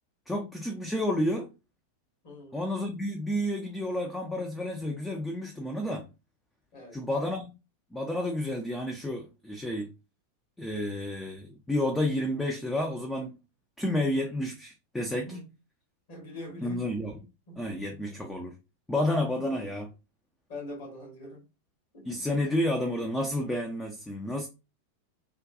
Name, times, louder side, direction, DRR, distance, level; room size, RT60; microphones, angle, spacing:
voice 1, 0.3-1.5 2.5-6.1 6.9-7.5 7.9-9.9 10.6-13.4 13.8-15.3 16.6-17.1 17.6-18.5 18.9-19.9 22.1-24.5, left 1 dB, 5° left, 0.4 m, -30 dB
voice 2, 2.2-2.6 6.7-7.0 15.2-15.5 16.1-16.9 17.5-17.9 20.5-21.5 21.9-22.3, left 1 dB, 50° left, 1.7 m, -43 dB
3.5 x 2.2 x 2.5 m
figure-of-eight pair, 90°, 0 cm